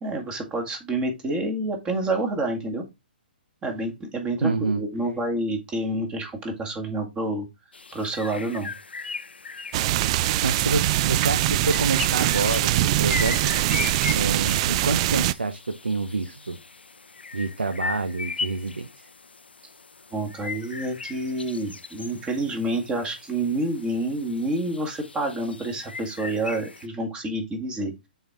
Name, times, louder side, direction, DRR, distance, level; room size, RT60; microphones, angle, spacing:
voice 1, 0.0-2.8 3.6-7.5 7.9-8.7 20.1-27.9, right 2 dB, 15° right, 1.8 m, -28 dB
voice 2, 4.4-4.8 10.4-13.5 14.1-16.6 17.3-19.1, right 3 dB, 85° right, 0.8 m, -27 dB
sound 1, 7.7-26.9, left 4 dB, 85° left, 0.5 m, -38 dB
sound 2, 9.7-15.3, right 15 dB, 35° right, 0.3 m, -23 dB
6.5 x 4.6 x 3.6 m
figure-of-eight pair, 130°, 5 cm